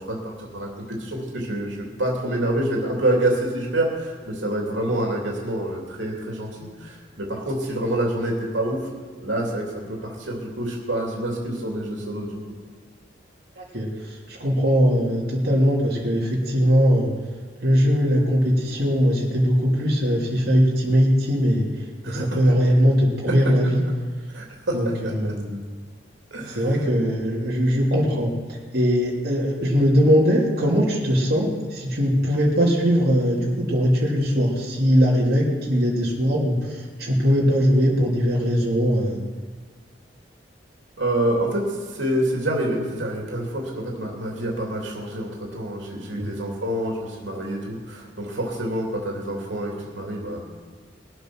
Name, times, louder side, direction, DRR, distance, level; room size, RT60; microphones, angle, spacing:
voice 1, 0.0-6.5 6.8-8.8 9.2-12.4 22.0-22.5 24.3-25.3 26.3-26.7 41.0-50.4, right 1 dB, 85° right, -1 dB, 2.9 m, -27 dB
voice 2, 13.5-13.9 14.3-17.1 17.6-21.6 22.1-23.8 24.7-25.6 26.5-28.3 28.7-39.2 46.2-46.3, equal, 60° right, -4 dB, 2.9 m, -20 dB
21.0 x 7.9 x 6.3 m, 1.5 s
head